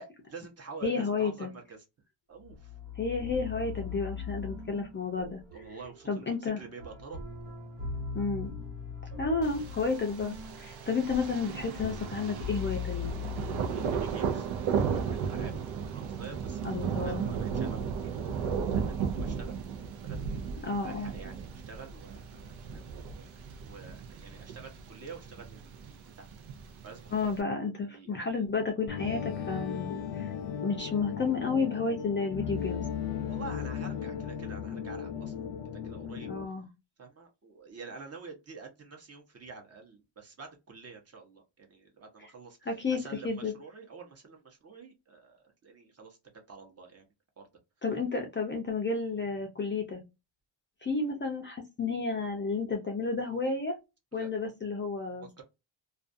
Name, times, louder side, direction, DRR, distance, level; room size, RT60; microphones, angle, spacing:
voice 1, 0.0-1.9 2.3-2.7 5.5-7.2 13.7-15.6 15.9-19.5 20.0-20.5 20.8-26.3 26.8-27.3 27.9-28.4 33.3-35.5 35.8-36.3 37.0-46.2 46.5-47.0 47.4-47.5 54.1-54.3 55.4-55.5, right 4 dB, 35° right, 0.8 m, -48 dB
voice 2, 0.8-1.5 3.0-5.4 6.1-6.6 8.1-8.5 9.2-13.1 16.6-17.3 20.6-21.1 27.1-30.3 30.6-32.8 36.3-36.7 42.7-43.5 47.8-50.0 50.8-53.8 54.1-55.3, left 4 dB, 25° left, 0.4 m, -31 dB
sound 1, 2.4-14.5, left 5 dB, 65° right, 0.9 m, -40 dB
Thunder, 9.4-27.4, right 6 dB, 90° right, 0.6 m, -35 dB
sound 2, 28.9-36.5, left 8 dB, 70° left, 0.6 m, -36 dB
2.4 x 2.3 x 2.5 m
cardioid pair, 145°, 45 cm